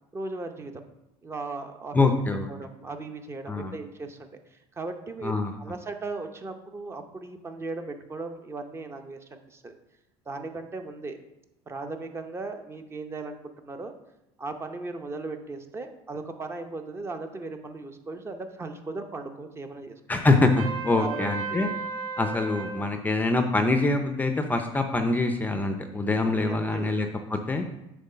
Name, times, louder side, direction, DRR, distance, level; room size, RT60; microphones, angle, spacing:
voice 1, 0.1-0.8 1.2-2.0 2.5-9.7 10.3-11.2 11.7-13.4 13.6-13.9 14.4-20.2 21.0-21.7 22.8-22.9 26.2-27.0, right 3 dB, 20° right, 6 dB, 0.7 m, -37 dB
voice 2, 1.9-2.7 3.5-3.7 5.2-5.5 20.1-21.7 22.2-27.7, left 2 dB, 15° left, 6 dB, 0.5 m, -25 dB
Trumpet, 20.6-22.8, right 4 dB, 50° right, 1.8 m, -34 dB
7.9 x 3.2 x 5.6 m, 0.89 s
cardioid pair, 125°, 12 cm